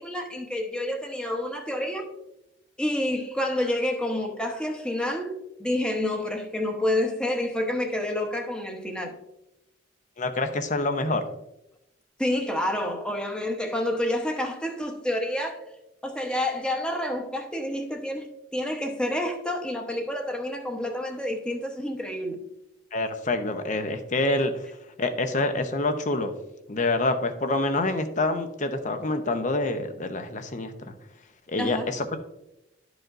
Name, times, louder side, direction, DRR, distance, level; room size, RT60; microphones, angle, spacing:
voice 1, 0.0-2.1 2.8-9.2 12.2-15.6 16.0-22.4 31.6-31.9, left 1 dB, 5° left, 0.9 m, -29 dB
voice 2, 10.2-11.2 22.9-24.7 25.0-26.3 26.7-30.9 31.5-32.2, left 2 dB, 40° left, 0.7 m, -26 dB
12.0 x 5.0 x 2.5 m
head